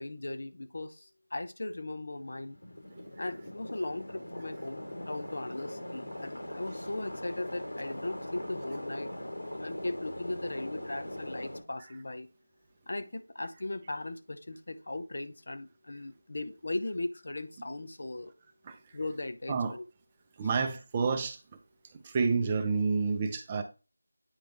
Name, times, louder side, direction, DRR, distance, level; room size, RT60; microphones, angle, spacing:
voice 1, 0.0-2.6 3.2-9.1 9.6-12.3 12.9-18.3 18.9-19.9, left 2 dB, 55° left, 0.7 m, -38 dB
sound 1, 2.2-11.6, left 1 dB, 90° left, 3.2 m, -41 dB
voice 2, 20.4-21.4 22.0-23.6, right 4 dB, 15° right, 0.6 m, -29 dB
9.0 x 3.4 x 3.2 m
figure-of-eight pair, 175°, 0 cm